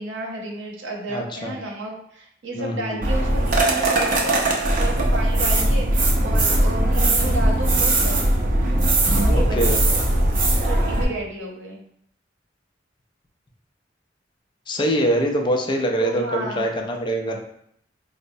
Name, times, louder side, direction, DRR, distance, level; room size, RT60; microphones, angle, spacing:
voice 1, 0.0-8.3 9.2-10.3 10.6-11.8 16.0-16.6, right 2 dB, 90° right, -1 dB, 0.7 m, -32 dB
voice 2, 1.1-1.6 2.5-3.1 5.6-5.8 9.3-9.8 14.7-17.4, equal, 25° left, 2 dB, 0.4 m, -24 dB
sound 1, 3.0-11.0, right 1 dB, 45° right, 0.6 m, -19 dB
4.4 x 2.0 x 2.6 m, 0.70 s
head